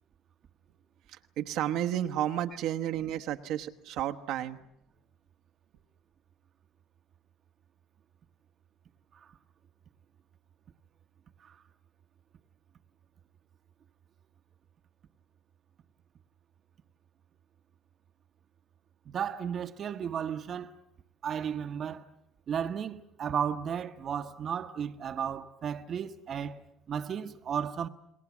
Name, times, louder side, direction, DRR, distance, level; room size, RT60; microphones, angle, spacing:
voice 1, 1.1-4.6, right 11 dB, 70° right, 1.1 m, -32 dB
voice 2, 19.1-20.7 21.2-22.1 22.5-27.9, right 8 dB, 45° right, 1.0 m, -34 dB
29.5 x 20.5 x 7.2 m
supercardioid pair, 90°, 0 cm